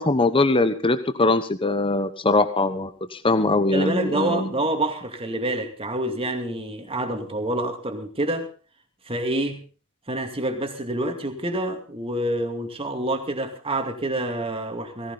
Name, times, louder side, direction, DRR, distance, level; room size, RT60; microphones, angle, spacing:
voice 1, 0.0-4.5, left 2 dB, 25° left, 11 dB, 1.0 m, -22 dB
voice 2, 3.7-8.5 9.1-9.6 10.1-15.1, right 1 dB, 25° right, 6 dB, 2.5 m, -27 dB
18.0 x 16.0 x 4.0 m, 0.36 s
head